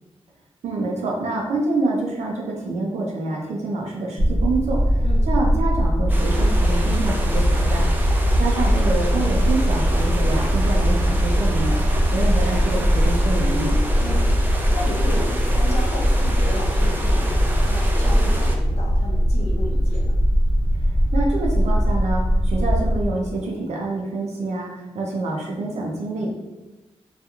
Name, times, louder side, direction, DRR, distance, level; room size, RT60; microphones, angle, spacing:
voice 1, 0.6-7.9 8.4-11.8 12.1-13.7 20.8-26.3, right 2 dB, 90° right, -2 dB, 0.4 m, -26 dB
sound 1, 4.2-23.1, equal, 35° right, 0.8 m, -20 dB
sound 2, 6.1-18.6, right 1 dB, 15° right, 0.3 m, -31 dB
voice 2, 14.7-20.1, left 1 dB, 75° left, -2 dB, 0.6 m, -33 dB
2.8 x 2.3 x 2.3 m, 1.1 s
wide cardioid pair, 130°, 11 cm